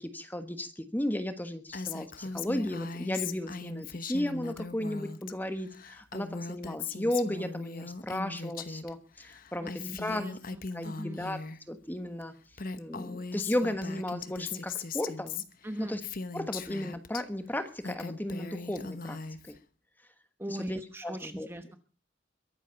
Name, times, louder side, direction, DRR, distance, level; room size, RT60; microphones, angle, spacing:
voice 1, 0.0-10.2 10.7-11.4 11.7-12.3 12.8-15.4 15.8-16.0 16.3-19.2 20.5-21.5, left 1 dB, 10° left, 9 dB, 1.3 m, -34 dB
Female speech woman speaking, 1.7-5.3 5.6-8.9 9.2-11.6 12.2-12.3 12.5-17.2 17.6-19.6, left 4 dB, 45° left, 1.0 m, -39 dB
voice 2, 9.6-11.2 15.6-16.0 20.4-21.8, right 1 dB, 10° right, 8 dB, 1.1 m, -40 dB
22.5 x 8.3 x 5.8 m, 0.37 s
head